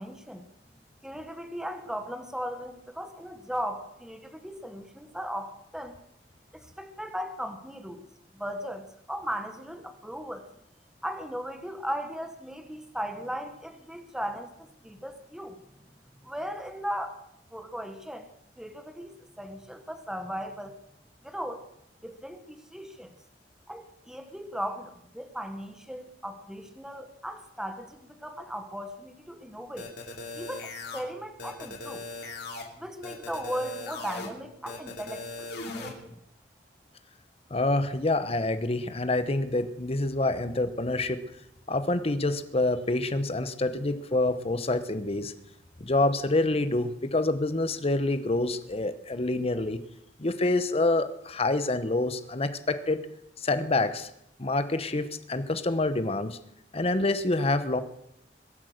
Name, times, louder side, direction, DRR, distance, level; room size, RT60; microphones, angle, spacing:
voice 1, 0.0-6.0 6.5-8.0 8.3-8.8 9.1-10.4 11.0-15.6 16.2-17.2 17.5-18.3 18.6-20.8 21.2-21.6 22.0-23.1 23.7-29.9 30.3-32.1 32.8-36.2, equal, 5° right, 6 dB, 1.2 m, -37 dB
sound 1, 29.8-31.0 31.4-32.6 33.0-34.3 34.7-35.9, left 3 dB, 65° left, 2.8 m, -39 dB
voice 2, 37.5-41.2 41.7-45.3 45.8-49.8 50.2-53.0 53.4-54.1 54.4-56.4 56.7-57.8, left 2 dB, 35° left, 11 dB, 1.0 m, -27 dB
22.0 x 8.3 x 6.5 m, 0.79 s
head